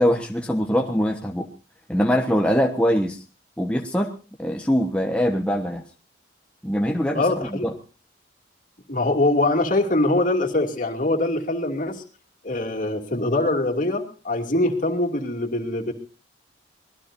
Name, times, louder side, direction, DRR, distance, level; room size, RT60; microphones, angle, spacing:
voice 1, 0.0-1.5 1.9-3.2 3.6-5.8 6.6-7.7, equal, 5° left, 1 dB, 1.2 m, -23 dB
voice 2, 7.1-7.7 8.9-12.0 12.4-15.9, left 2 dB, 45° left, 4 dB, 2.7 m, -23 dB
24.5 x 19.0 x 2.7 m, 0.39 s
head